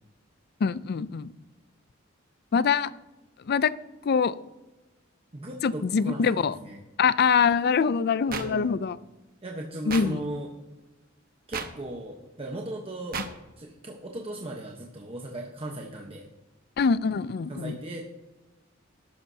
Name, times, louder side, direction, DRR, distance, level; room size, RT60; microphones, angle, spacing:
voice 1, 0.6-1.3 2.5-2.9 3.5-3.7 4.0-4.4 5.6-6.5 7.0-9.0 9.9-10.2 16.8-17.8, left 6 dB, 55° left, 17 dB, 0.4 m, -24 dB
voice 2, 5.3-6.8 8.3-8.8 9.4-10.5 11.5-13.2 13.6-16.3 17.5-18.0, right 1 dB, 30° right, 0 dB, 1.0 m, -37 dB
sound 1, 8.3-8.5 9.9-10.0 11.5-11.7 13.1-13.3, right 6 dB, 50° right, 1.0 m, -32 dB
14.0 x 11.5 x 2.8 m, 1.1 s
head